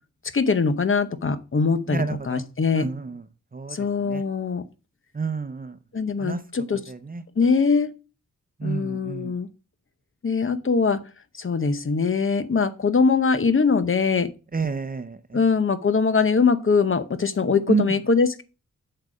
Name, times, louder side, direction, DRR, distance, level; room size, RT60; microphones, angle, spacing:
voice 1, 0.3-2.9 3.7-4.6 5.9-6.8 7.4-7.9 8.6-9.5 10.2-11.0 11.4-14.3 15.3-18.4, left 5 dB, 40° left, 11 dB, 0.9 m, -22 dB
voice 2, 1.9-2.4 2.7-3.2 3.5-4.2 5.1-5.8 6.2-6.4 6.7-7.2 8.6-9.3 14.5-15.4 17.7-17.8, right 4 dB, 30° right, 11 dB, 0.7 m, -29 dB
8.1 x 6.7 x 4.9 m, 0.32 s
wide cardioid pair, 150°, 31 cm